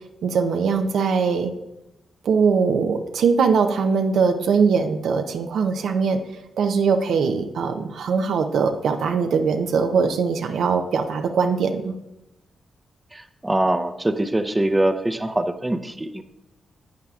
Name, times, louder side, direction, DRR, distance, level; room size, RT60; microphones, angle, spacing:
voice 1, 0.2-1.5 2.2-6.2 6.6-11.9, right 5 dB, 75° right, 6 dB, 0.5 m, -21 dB
voice 2, 13.1-16.2, right 1 dB, 20° right, 10 dB, 0.6 m, -23 dB
10.5 x 7.9 x 2.4 m, 0.92 s
supercardioid pair, 50°, 0 cm